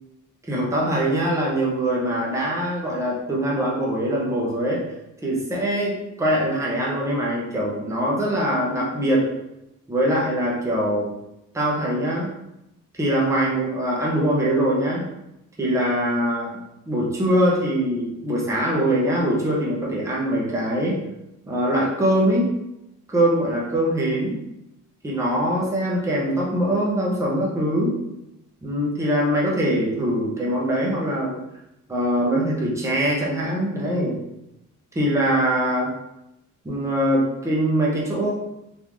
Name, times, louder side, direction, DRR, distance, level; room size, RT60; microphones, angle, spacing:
voice 1, 0.5-4.8 5.2-9.3 9.9-11.1 11.5-12.3 13.0-15.0 15.6-16.5 16.9-21.0 21.5-22.5 23.1-24.4 25.0-28.0 28.6-31.4 31.9-34.2 34.9-35.9 36.6-38.3, right 1 dB, 10° right, -4 dB, 0.7 m, -22 dB
3.6 x 2.6 x 3.0 m, 0.86 s
cardioid pair, 165°, 32 cm